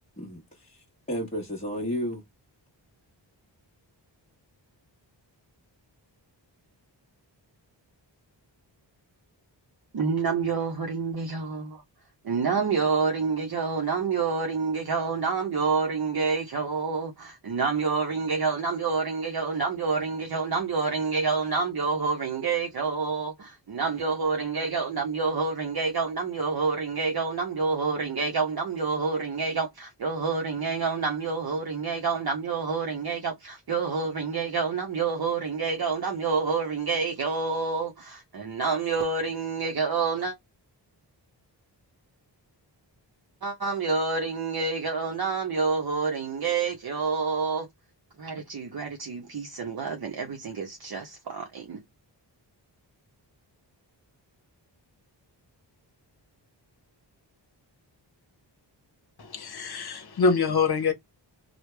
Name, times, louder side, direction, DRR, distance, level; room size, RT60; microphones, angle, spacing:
voice 1, 0.2-2.2, equal, 15° left, 1.1 m, -33 dB
voice 2, 9.9-11.8 12.2-40.3 43.4-47.7 48.2-51.8, right 4 dB, 55° right, 0.8 m, -28 dB
voice 3, 59.2-60.9, left 4 dB, 55° left, 1.0 m, -25 dB
3.2 x 2.3 x 3.2 m
wide cardioid pair, 100°, 45 cm